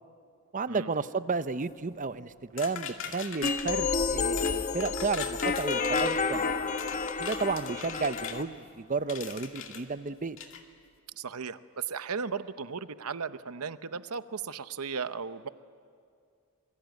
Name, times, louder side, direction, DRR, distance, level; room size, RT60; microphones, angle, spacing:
voice 1, 0.5-6.5 7.2-10.4, right 4 dB, 35° right, 13 dB, 0.7 m, -32 dB
sound 1, 2.6-3.8 4.4-4.6 4.8-6.2 6.8-8.4 9.1-9.8 10.4-10.6, left 7 dB, 60° left, 2.4 m, -40 dB
sound 2, 3.4-8.4, left 4 dB, 35° left, 1.0 m, -30 dB
voice 2, 11.2-15.5, right 5 dB, 80° right, 12 dB, 0.8 m, -36 dB
27.0 x 22.5 x 9.3 m, 2.3 s
head